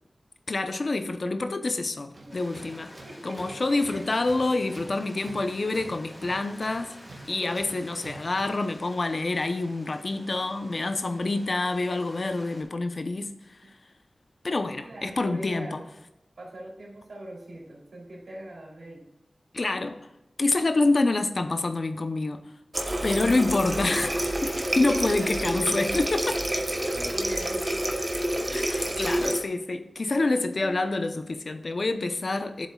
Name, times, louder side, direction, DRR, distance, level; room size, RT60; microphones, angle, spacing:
voice 1, 0.5-2.9 3.2-7.0 7.3-13.6 14.4-15.8 19.5-20.1 20.4-22.4 23.0-26.4 28.5-32.7, left 2 dB, 55° left, 0.8 m, -27 dB
Tools, 2.1-8.7, right 2 dB, 55° right, 1.6 m, -48 dB
Stream, 2.3-12.6, equal, 10° left, 2.7 m, -48 dB
voice 2, 3.0-4.0 7.8-8.1 13.6-13.7 14.8-15.8 16.4-19.1 25.0-25.3 26.9-27.8 28.5-29.3 30.6-31.0, right 1 dB, 80° right, 3.2 m, -42 dB
Water tap faucet, 22.7-29.4, right 1 dB, 25° right, 1.1 m, -28 dB
10.5 x 7.6 x 2.4 m
wide cardioid pair, 65°, 0 cm